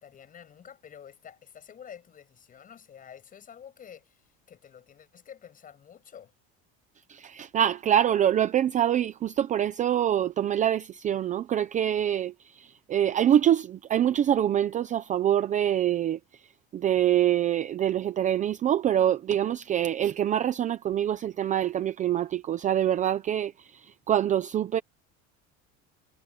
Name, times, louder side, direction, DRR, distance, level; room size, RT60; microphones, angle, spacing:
voice 1, 0.0-6.3, left 8 dB, 25° left, 6.6 m, -49 dB
voice 2, 7.1-16.2 16.7-24.8, right 10 dB, 25° right, 0.6 m, -25 dB
cardioid pair, 170°, 32 cm